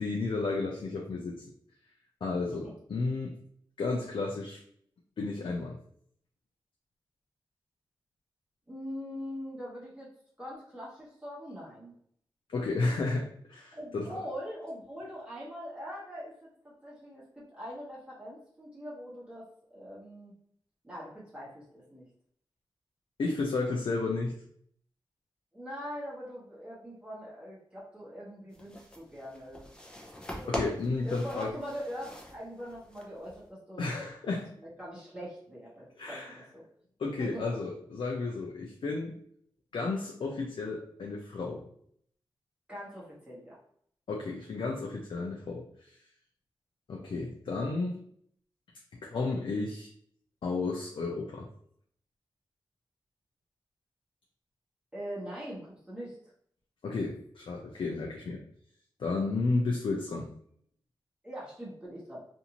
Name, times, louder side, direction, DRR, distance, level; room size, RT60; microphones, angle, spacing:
voice 1, 0.0-1.4 2.2-3.4 3.8-4.6 5.2-5.8 12.5-14.2 23.2-24.3 30.5-31.6 33.8-34.5 36.0-36.4 37.0-39.1 39.7-41.6 44.1-46.0 46.9-48.0 48.9-49.9 50.4-51.5 56.8-58.4 59.0-60.3, left 3 dB, 75° left, -1 dB, 0.5 m, -32 dB
voice 2, 8.7-10.1 10.4-11.9 13.7-16.5 16.8-20.3 20.8-22.0 25.5-29.7 30.2-30.6 31.0-33.8 34.6-36.6 37.2-37.5 42.7-43.6 54.9-56.2 61.2-62.2, equal, 10° right, -7 dB, 1.1 m, -42 dB
sound 1, 28.5-33.5, left 1 dB, 10° left, 0.7 m, -42 dB
2.6 x 2.5 x 2.9 m, 0.64 s
wide cardioid pair, 85°, 9 cm